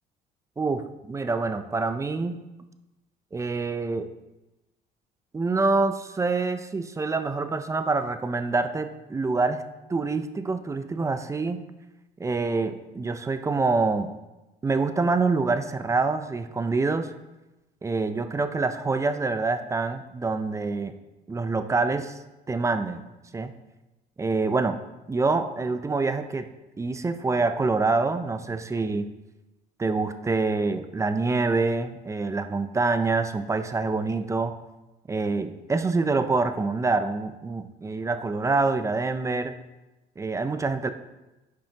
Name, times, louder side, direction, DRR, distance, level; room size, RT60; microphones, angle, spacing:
voice 1, 0.6-2.4 3.3-4.1 5.3-9.6 9.9-11.6 12.2-14.1 14.6-17.1 17.8-20.9 21.3-22.1 22.5-23.0 23.3-23.5 24.2-24.8 25.1-26.5 26.8-29.1 29.8-34.5 35.1-39.5 40.2-40.9, right 3 dB, 15° right, 10 dB, 0.5 m, -26 dB
10.0 x 6.1 x 2.8 m, 1.0 s
cardioid pair, 110°, 17 cm